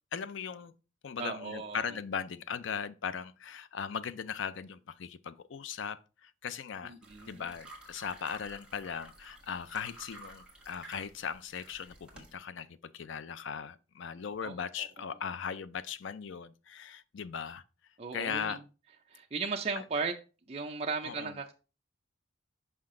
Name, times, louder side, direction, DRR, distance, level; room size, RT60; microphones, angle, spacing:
voice 1, 0.1-0.7 1.0-6.9 7.3-17.6 18.1-18.6 19.8-19.9 21.0-21.3, left 7 dB, 65° left, 0.4 m, -38 dB
voice 2, 1.2-2.0 6.8-7.5 14.4-14.9 18.0-18.6 19.1-20.1 20.5-21.5, right 4 dB, 30° right, 0.5 m, -36 dB
sound 1, 7.0-12.4, right 2 dB, 5° right, 1.3 m, -52 dB
5.8 x 5.4 x 3.7 m
head